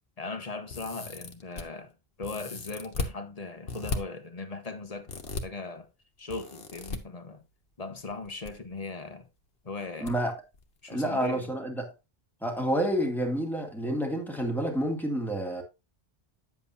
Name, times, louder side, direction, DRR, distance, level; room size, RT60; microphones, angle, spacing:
voice 1, 0.2-1.9 2.2-5.9 6.2-7.4 7.8-9.3 9.6-10.1 10.8-11.5, left 3 dB, 40° left, 1.1 m, -39 dB
sound 1, 0.7-1.6 2.2-3.1 3.7-4.0 5.1-5.4 6.3-7.0 8.1-8.5 8.8-8.9 10.1-10.2 10.5-10.6, left 3 dB, 70° left, 1.4 m, -35 dB
voice 2, 10.0-10.3 10.9-11.9 12.4-15.6, right 1 dB, ahead, 2.0 m, -29 dB
9.5 x 7.6 x 2.7 m
omnidirectional pair, 1.0 m